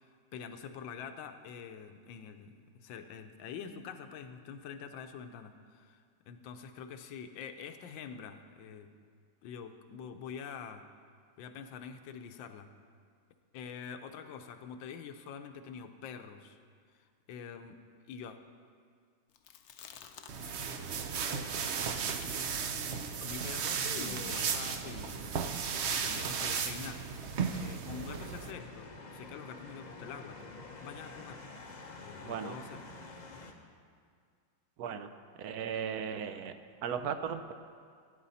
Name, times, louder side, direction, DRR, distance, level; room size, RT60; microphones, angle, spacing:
voice 1, 0.3-6.0 6.3-8.9 9.4-10.8 11.4-12.7 13.5-16.6 17.3-17.8 18.1-18.4 23.2-25.2 25.9-27.0 27.4-31.5 32.0-32.8, left 7 dB, 80° left, 8 dB, 1.4 m, -45 dB
Chewing mastication, 19.4-20.8 21.1-24.5, left 7 dB, 65° left, 1.0 m, -49 dB
sound 1, 20.3-28.5, right 6 dB, 85° right, 0.5 m, -35 dB
sound 2, 27.9-33.5, left 3 dB, 50° left, 0.5 m, -48 dB
voice 2, 32.2-32.5 34.8-35.1 35.4-36.5 36.8-37.5, right 7 dB, 70° right, 9 dB, 0.9 m, -36 dB
16.0 x 9.6 x 4.1 m, 2.1 s
omnidirectional pair, 2.0 m